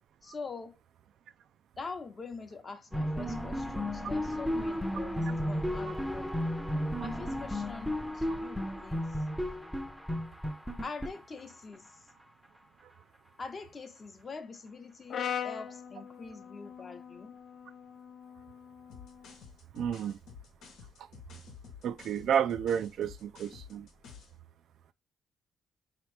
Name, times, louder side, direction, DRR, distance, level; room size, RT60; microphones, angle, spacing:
voice 1, 0.2-0.8 1.8-6.4 7.0-9.2 10.6-11.9 13.4-17.4, left 4 dB, 35° left, 0.7 m, -44 dB
sound 1, 2.9-11.8, equal, ahead, 0.6 m, -33 dB
Brass instrument, 15.1-19.3, left 8 dB, 60° left, 0.3 m, -41 dB
sound 2, 18.9-24.4, left 6 dB, 85° left, 1.0 m, -51 dB
voice 2, 19.7-20.2 21.8-23.9, right 8 dB, 70° right, 0.3 m, -31 dB
4.1 x 2.9 x 3.2 m
cardioid pair, 90°, 0 cm